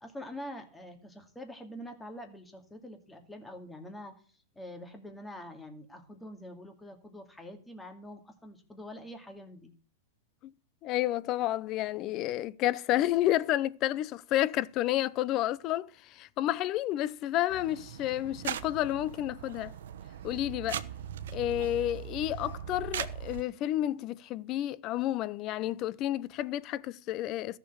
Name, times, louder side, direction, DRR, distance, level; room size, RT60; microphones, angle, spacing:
voice 1, 0.0-9.7, left 1 dB, 10° left, 2.4 m, -45 dB
voice 2, 10.8-19.8 20.2-20.8 21.3-27.6, left 14 dB, 40° left, 0.6 m, -30 dB
sound 1, 17.5-23.4, right 10 dB, 75° right, 0.9 m, -39 dB
14.0 x 6.8 x 6.8 m
hypercardioid pair, 135°, 0 cm